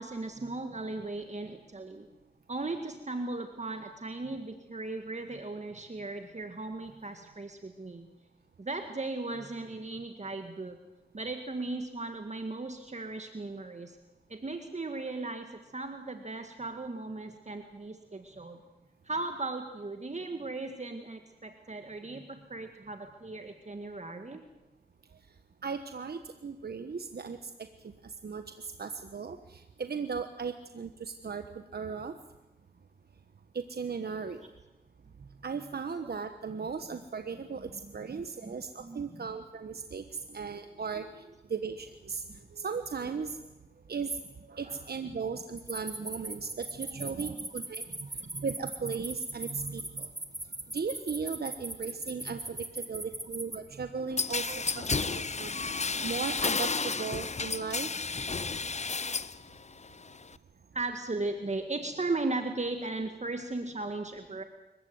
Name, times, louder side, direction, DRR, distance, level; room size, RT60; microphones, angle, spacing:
voice 1, 0.0-2.1 2.5-8.1 8.6-10.8 11.1-14.0 14.3-18.6 19.0-24.5 34.3-34.5 36.0-36.1 36.9-37.0 37.8-39.3 40.3-40.4 42.3-42.4 44.6-45.4 47.1-47.5 48.2-48.4 54.5-54.7 60.7-64.4, right 2 dB, 45° right, 6 dB, 1.9 m, -37 dB
voice 2, 25.6-27.4 28.2-28.4 28.8-29.4 29.8-31.4 31.7-32.1 33.5-34.4 35.4-40.0 40.3-41.1 41.5-42.2 42.5-43.4 43.9-44.1 44.5-48.1 48.3-50.1 50.7-55.5 56.0-57.9, right 5 dB, 75° right, 8 dB, 1.2 m, -36 dB
sound 1, 45.6-53.6, right 1 dB, 25° right, 2.9 m, -39 dB
sound 2, 54.2-59.4 59.7-60.4, left 4 dB, 45° left, 0.8 m, -32 dB
24.5 x 15.0 x 9.4 m, 1.0 s
cardioid pair, 50°, 17 cm